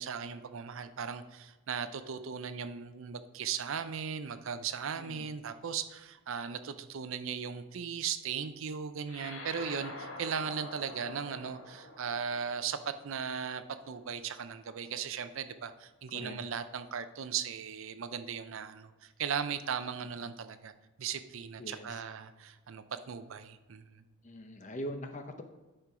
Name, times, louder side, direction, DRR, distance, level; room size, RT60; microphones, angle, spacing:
voice 1, 0.0-20.7 21.0-23.8, right 7 dB, 65° right, 11 dB, 0.5 m, -37 dB
voice 2, 5.0-5.3 16.1-16.4 21.6-22.0 24.2-25.4, equal, 35° left, 6 dB, 0.7 m, -42 dB
sound 1, 9.1-13.8, left 2 dB, 70° left, 1.4 m, -47 dB
10.5 x 4.5 x 4.8 m, 1.1 s
head